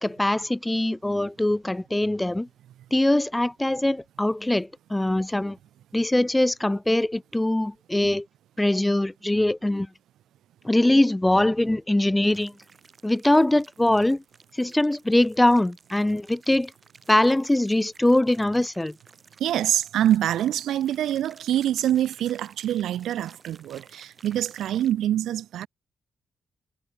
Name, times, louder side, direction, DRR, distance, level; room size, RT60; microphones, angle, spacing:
voice 1, 0.0-2.5 2.9-5.6 5.9-8.3 8.6-9.9 10.6-12.5 13.0-14.2 14.6-16.7 17.1-18.9, left 1 dB, 5° left, 0.4 m, -22 dB
sound 1, 12.2-24.9, right 4 dB, 25° right, 4.7 m, -54 dB
voice 2, 19.4-25.7, right 11 dB, 80° right, 0.4 m, -25 dB
wide cardioid pair, 175°, 0 cm